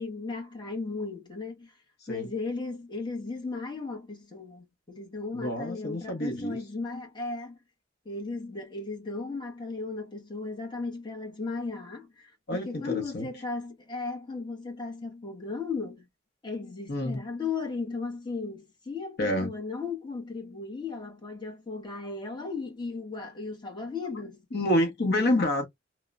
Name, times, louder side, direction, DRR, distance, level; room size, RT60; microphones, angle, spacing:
voice 1, 0.0-1.7 2.1-7.6 8.0-16.1 16.4-24.4 25.1-25.3, left 4 dB, 25° left, 0.9 m, -36 dB
voice 2, 5.3-6.6 12.5-13.3 16.9-17.2 19.2-19.5 24.5-25.7, left 1 dB, 55° left, 0.8 m, -28 dB
3.0 x 2.0 x 2.3 m
head